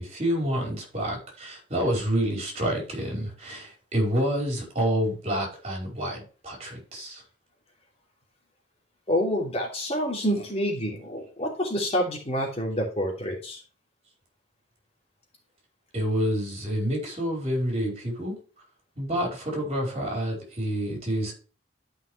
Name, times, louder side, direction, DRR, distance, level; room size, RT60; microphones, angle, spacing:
voice 1, 0.0-7.2 15.9-18.4 19.0-21.3, equal, 35° right, 5.0 m, -28 dB
voice 2, 9.1-13.6, equal, 35° left, 2.9 m, -27 dB
12.5 x 5.8 x 3.3 m
head